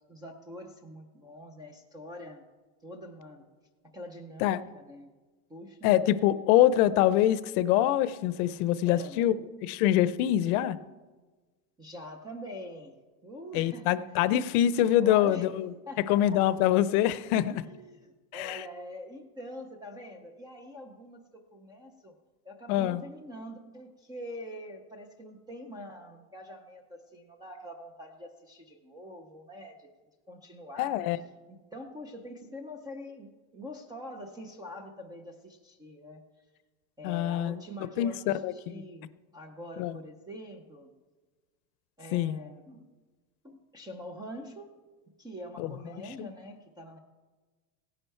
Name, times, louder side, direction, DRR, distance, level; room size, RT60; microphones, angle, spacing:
voice 1, 0.1-2.4 2.8-3.4 3.9-5.1 5.5-6.0 8.9-9.2 11.8-12.9 13.2-14.0 15.0-15.5 15.9-16.4 17.5-22.1 22.4-29.9 30.3-31.0 31.5-36.2 37.0-40.9 42.0-42.9 43.4-44.7 45.2-47.0, equal, 10° right, 4 dB, 0.3 m, -44 dB
voice 2, 5.8-9.3 9.6-10.8 13.5-15.7 16.1-17.6 18.3-18.6 22.7-23.0 30.8-31.2 37.0-37.6 38.0-38.8 39.8-40.0 42.1-42.4 45.6-45.7 46.2-46.3, left 12 dB, 65° left, 16 dB, 0.7 m, -25 dB
16.5 x 10.0 x 4.4 m, 1.3 s
supercardioid pair, 150°, 48 cm